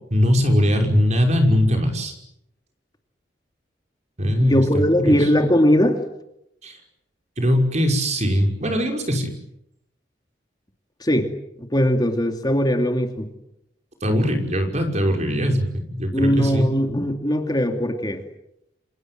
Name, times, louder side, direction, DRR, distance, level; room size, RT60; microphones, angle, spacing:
voice 1, 0.1-2.1 4.2-4.6 5.0-5.3 6.6-6.8 7.4-9.3 14.0-16.7, equal, 40° right, 4 dB, 5.7 m, -20 dB
voice 2, 4.4-6.0 11.0-11.3 11.6-13.3 16.1-18.2, equal, 25° left, 5 dB, 2.6 m, -20 dB
28.5 x 27.0 x 7.9 m, 0.81 s
head